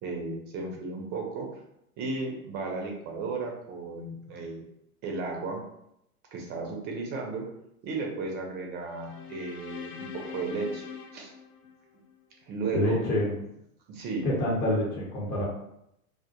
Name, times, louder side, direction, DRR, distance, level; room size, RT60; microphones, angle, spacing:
voice 1, 0.0-1.5 2.0-4.6 5.0-5.6 6.3-7.4 7.8-10.8 11.1-11.3 12.5-13.0 13.9-14.3, right 3 dB, 25° right, 0 dB, 0.4 m, -34 dB
sound 1, 8.8-12.2, left 6 dB, 85° left, 0.6 m, -43 dB
voice 2, 12.7-13.3 14.2-15.4, left 1 dB, 35° left, -5 dB, 0.8 m, -27 dB
2.1 x 2.1 x 2.8 m, 0.79 s
hypercardioid pair, 105°, 44 cm